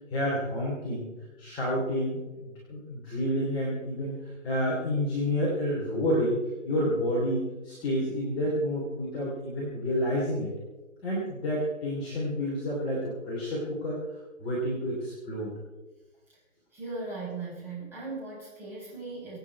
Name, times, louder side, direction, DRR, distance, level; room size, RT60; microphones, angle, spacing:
voice 1, 0.1-1.1 1.4-6.4 6.6-10.5 11.0-14.0 14.4-15.5, equal, 10° left, -6 dB, 3.0 m, -29 dB
voice 2, 16.7-19.4, right 3 dB, 5° right, -7 dB, 5.2 m, -38 dB
25.0 x 9.1 x 4.7 m, 1.1 s
hypercardioid pair, 160°, 39 cm